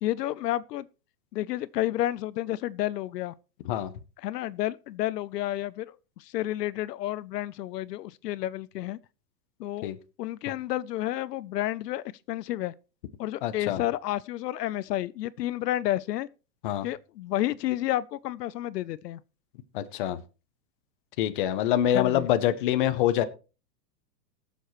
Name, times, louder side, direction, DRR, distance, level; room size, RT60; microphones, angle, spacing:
voice 1, 0.0-0.9 1.3-3.3 4.2-9.0 9.6-9.9 10.2-12.7 13.2-16.3 16.8-19.2 21.9-22.3, left 14 dB, 75° left, 0.7 m, -30 dB
voice 2, 13.4-13.8 16.6-16.9 19.7-20.2 21.2-23.2, left 11 dB, 30° left, 0.6 m, -25 dB
20.5 x 7.2 x 3.1 m
supercardioid pair, 175°, 49 cm